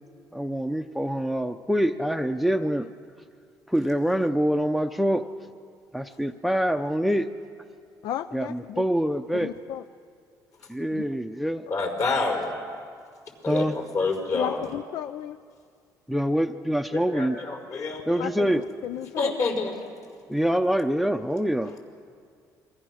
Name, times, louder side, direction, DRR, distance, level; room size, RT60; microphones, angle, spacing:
voice 1, 0.3-2.9 3.7-5.2 5.9-7.3 8.3-9.5 10.7-11.7 13.5-13.7 16.1-17.4 18.1-18.6 20.3-21.7, equal, ahead, 9 dB, 0.6 m, -25 dB
voice 2, 8.0-8.8 9.4-9.8 10.9-11.1 14.3-15.4 18.2-19.3, left 11 dB, 70° left, 13 dB, 0.5 m, -33 dB
voice 3, 11.7-12.6 13.4-14.7 16.9-18.3 19.1-19.7 21.7-21.8, left 3 dB, 50° left, 2 dB, 5.1 m, -28 dB
28.5 x 23.0 x 6.4 m, 2.2 s
cardioid pair, 125°, 7 cm